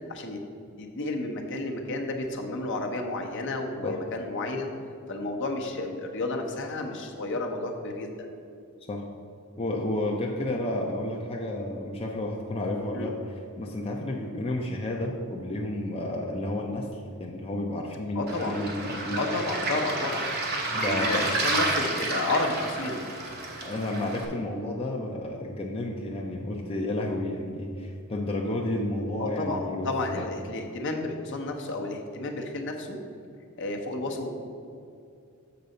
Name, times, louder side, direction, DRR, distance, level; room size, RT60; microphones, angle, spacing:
voice 1, 0.8-4.7 5.1-8.1 12.9-13.1 18.1-18.6 19.2-20.3 20.9-23.0 29.2-33.0 33.6-34.3, left 2 dB, 55° left, 2 dB, 0.9 m, -31 dB
voice 2, 9.6-19.2 20.7-21.3 23.6-30.3, left 1 dB, 25° left, -1 dB, 0.5 m, -31 dB
Waves surf, 18.3-24.3, right 2 dB, 45° right, 1.1 m, -30 dB
6.8 x 4.0 x 6.5 m, 2.5 s
head